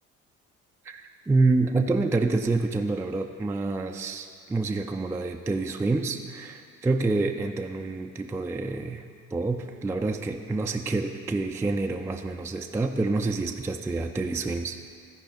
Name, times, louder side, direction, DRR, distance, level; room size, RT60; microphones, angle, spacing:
voice 1, 0.8-9.0 9.3-14.8, right 3 dB, 5° right, 4 dB, 0.3 m, -27 dB
13.5 x 4.9 x 5.2 m, 2.3 s
hypercardioid pair, 55°, 39 cm